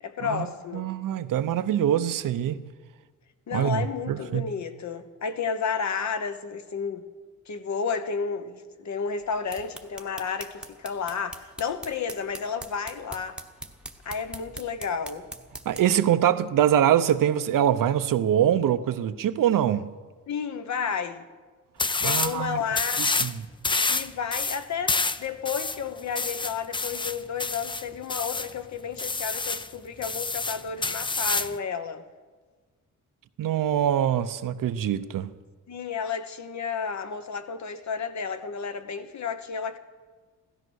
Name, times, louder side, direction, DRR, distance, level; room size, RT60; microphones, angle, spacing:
voice 1, 0.0-0.9 3.5-7.0 7.5-13.4 14.0-15.3 20.3-21.3 22.0-23.1 23.9-32.0 35.7-39.8, left 6 dB, 60° left, 1.1 m, -32 dB
voice 2, 0.7-2.6 3.5-4.5 15.7-19.9 22.0-22.6 23.0-23.3 33.4-35.3, right 10 dB, 85° right, 0.8 m, -24 dB
sound 1, 9.2-16.0, right 1 dB, 5° right, 1.0 m, -43 dB
sound 2, 21.8-22.4 22.7-23.3 23.6-28.5 29.0-29.7 30.0-31.6, left 3 dB, 15° left, 0.4 m, -28 dB
16.5 x 13.0 x 6.4 m
wide cardioid pair, 135°, 32 cm